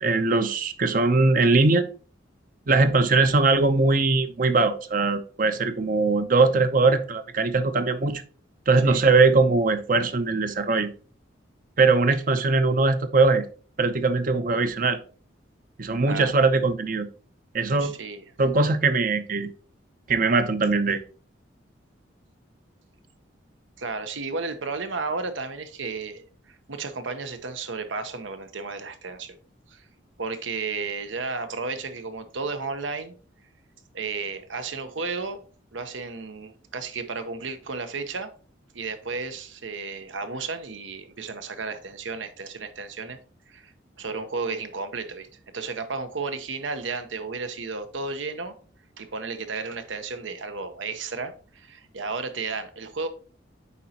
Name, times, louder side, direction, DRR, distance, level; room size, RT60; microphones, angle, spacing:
voice 1, 0.0-1.9 2.7-8.2 8.7-10.9 11.8-13.5 13.8-15.0 15.8-17.1 17.5-17.9 18.4-19.5 20.1-21.0, right 3 dB, 45° right, 0.6 m, -21 dB
voice 2, 17.8-18.2 23.8-26.2 26.7-29.4 29.7-29.8 30.2-33.1 33.9-35.4 35.7-38.3 38.7-43.2 43.5-43.7 44.0-45.3 45.5-48.5 49.0-53.1, right 4 dB, 85° right, 0.9 m, -33 dB
8.3 x 5.1 x 2.9 m
head